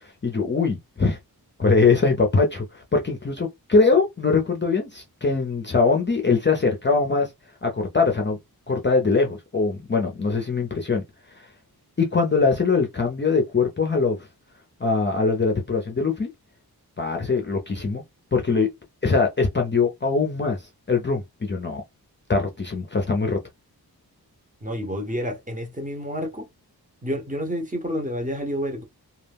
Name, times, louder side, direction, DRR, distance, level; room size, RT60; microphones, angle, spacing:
voice 1, 0.2-1.2 1.6-7.3 7.6-8.4 8.7-11.0 12.0-14.2 14.8-16.3 17.0-18.0 18.3-18.7 19.0-20.6 20.9-21.8 22.3-23.4, left 4 dB, 30° left, 0.5 m, -22 dB
voice 2, 24.6-26.5 27.0-28.8, equal, 20° right, 0.8 m, -29 dB
2.3 x 2.0 x 3.4 m
wide cardioid pair, 100°, 38 cm